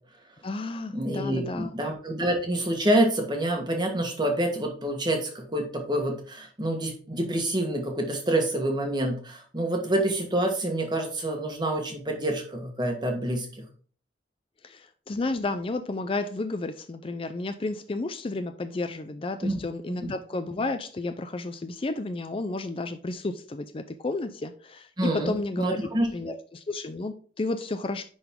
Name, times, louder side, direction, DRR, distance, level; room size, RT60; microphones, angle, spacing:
voice 1, 0.4-1.7 14.6-28.0, left 2 dB, 30° left, 9 dB, 0.4 m, -32 dB
voice 2, 0.9-13.5 19.4-19.6 19.9-20.1 25.0-26.1, right 1 dB, 25° right, 2 dB, 1.5 m, -27 dB
10.0 x 3.9 x 3.6 m, 0.43 s
head